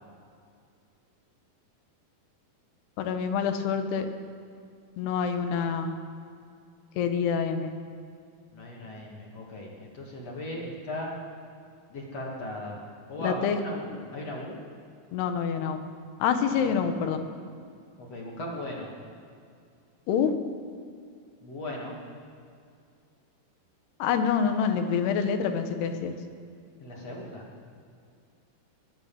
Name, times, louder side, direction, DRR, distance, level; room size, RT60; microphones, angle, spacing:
voice 1, 3.0-4.1 5.0-5.9 7.0-7.7 13.2-13.6 15.1-15.8 16.2-17.2 20.1-20.3 24.0-26.1, left 7 dB, 85° left, 7 dB, 3.1 m, -26 dB
voice 2, 8.5-11.1 11.9-12.8 13.1-14.6 16.6-16.8 18.0-18.9 21.4-22.0 26.8-27.4, left 1 dB, 50° left, -2 dB, 2.7 m, -37 dB
17.0 x 12.0 x 7.0 m, 2.3 s
omnidirectional pair, 4.6 m